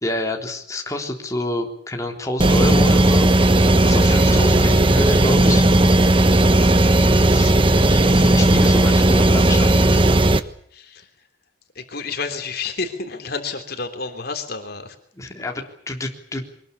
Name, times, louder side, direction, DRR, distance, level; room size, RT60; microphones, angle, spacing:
voice 1, 0.0-3.3 3.8-5.7 7.3-10.3 15.2-16.5, left 1 dB, 15° left, 2 dB, 3.7 m, -28 dB
sound 1, 2.4-10.4, right 1 dB, 30° right, 1.2 m, -15 dB
voice 2, 10.7-11.1 11.7-14.9, left 4 dB, 55° left, 7 dB, 3.3 m, -30 dB
24.0 x 20.5 x 8.5 m, 0.64 s
head